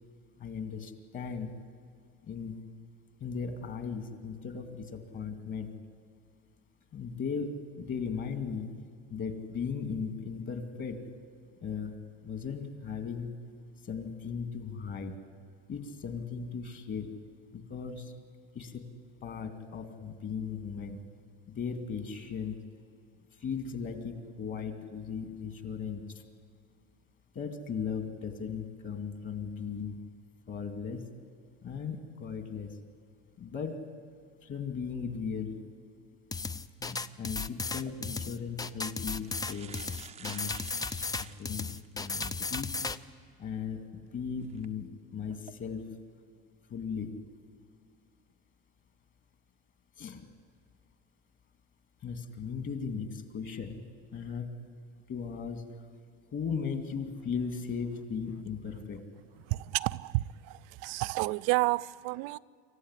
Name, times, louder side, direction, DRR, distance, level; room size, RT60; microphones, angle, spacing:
voice 1, 0.4-1.5 2.2-2.6 3.2-5.7 6.9-8.7 9.1-11.0 11.6-11.9 12.2-13.4 13.8-15.1 15.7-17.1 17.5-18.1 18.5-18.8 19.2-21.0 21.5-22.6 23.3-26.2 27.3-30.0 30.5-31.1 31.6-32.8 33.4-33.8 34.4-35.6 36.8-39.8 40.2-42.7 43.4-45.9 46.7-47.1 50.0-50.3 52.0-53.8 54.1-54.5 55.1-55.6 56.3-59.0, left 6 dB, 40° left, 9 dB, 2.6 m, -37 dB
sound 1, 36.3-43.0, left 4 dB, 10° left, 0.6 m, -35 dB
sound 2, 37.9-38.0 38.8-38.9 39.1-41.9 42.5-42.6 44.4-44.7 45.3-45.5, right 7 dB, 20° right, 0.7 m, -50 dB
voice 2, 59.5-62.4, right 21 dB, 85° right, 18 dB, 0.6 m, -30 dB
27.0 x 14.5 x 9.9 m, 2.2 s
cardioid pair, 135°, 30 cm